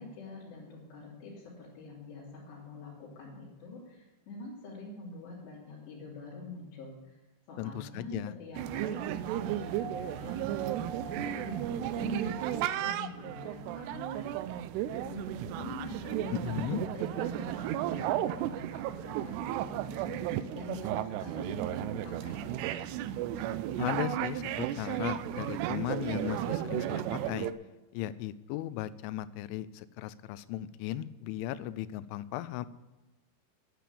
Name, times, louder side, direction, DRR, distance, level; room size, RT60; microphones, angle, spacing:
voice 1, 0.0-7.2 7.5-14.4 15.0-22.5, left 3 dB, 65° left, -7 dB, 4.9 m, -45 dB
voice 2, 7.6-8.4 16.3-16.8 23.8-27.5 27.9-32.7, left 13 dB, 90° left, 16 dB, 3.0 m, -36 dB
sound 1, 8.5-27.5, right 12 dB, 85° right, 2.4 m, -34 dB
sound 2, 9.7-12.9 14.3-14.4, right 5 dB, 70° right, 4.1 m, -46 dB
10.5 x 9.3 x 8.5 m, 1.1 s
omnidirectional pair, 5.4 m